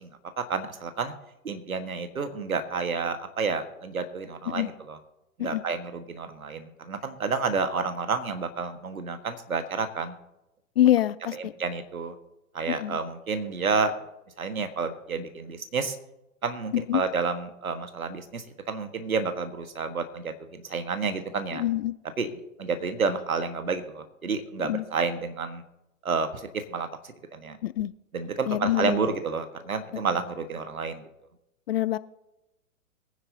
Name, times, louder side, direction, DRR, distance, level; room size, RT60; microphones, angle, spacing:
voice 1, 0.4-1.1 1.4-5.0 5.4-10.2 11.6-12.1 12.5-13.9 14.4-16.0 16.4-21.6 22.2-22.3 22.6-25.6 26.0-26.9 27.3-27.6 28.1-31.1, right 4 dB, 75° right, 8 dB, 1.6 m, -30 dB
voice 2, 10.8-11.5 12.7-13.0 16.7-17.0 21.5-21.9 24.6-24.8 27.6-27.9 28.5-29.1 29.9-30.0 31.7-32.0, left 13 dB, 45° left, 17 dB, 0.5 m, -25 dB
22.5 x 9.7 x 2.8 m, 0.92 s
figure-of-eight pair, 110°, 43 cm